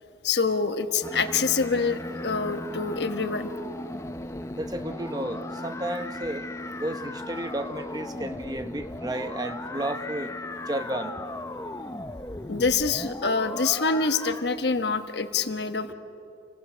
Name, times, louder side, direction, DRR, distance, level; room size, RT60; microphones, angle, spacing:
voice 1, 0.2-3.5 12.5-15.9, left 4 dB, 70° left, 8 dB, 1.2 m, -26 dB
sound 1, 1.0-14.5, left 2 dB, 15° left, 0.6 m, -37 dB
voice 2, 4.5-6.5 6.8-10.4 10.6-11.3 15.9-16.0, right 1 dB, 20° right, 8 dB, 1.1 m, -32 dB
28.5 x 22.0 x 6.3 m, 2.6 s
head